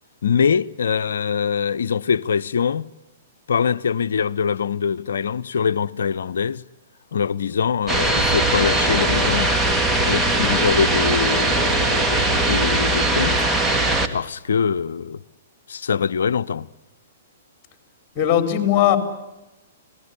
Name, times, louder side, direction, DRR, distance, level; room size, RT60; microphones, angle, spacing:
voice 1, 0.2-2.9 3.5-6.6 7.1-9.6 10.0-13.5 14.1-15.2 15.7-16.7, left 6 dB, 70° left, 0.8 m, -23 dB
sound 1, 7.9-14.1, right 2 dB, 10° right, 2.1 m, -20 dB
voice 2, 18.1-19.0, left 11 dB, 30° left, 4.6 m, -18 dB
27.0 x 19.0 x 9.8 m
hypercardioid pair, 120°, 0 cm